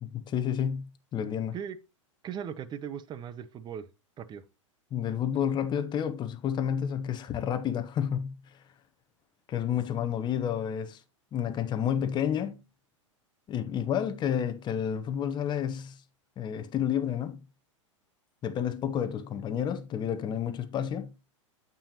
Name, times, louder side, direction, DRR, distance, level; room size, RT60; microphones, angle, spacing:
voice 1, 0.0-1.6 4.9-8.4 9.5-11.0 11.3-12.6 13.5-16.0 16.4-17.4 18.4-21.1, left 9 dB, 25° left, 0.9 m, -30 dB
voice 2, 2.2-3.9 4.2-4.4, right 8 dB, 25° right, 0.7 m, -38 dB
8.8 x 7.0 x 2.9 m
hypercardioid pair, 100°, 17 cm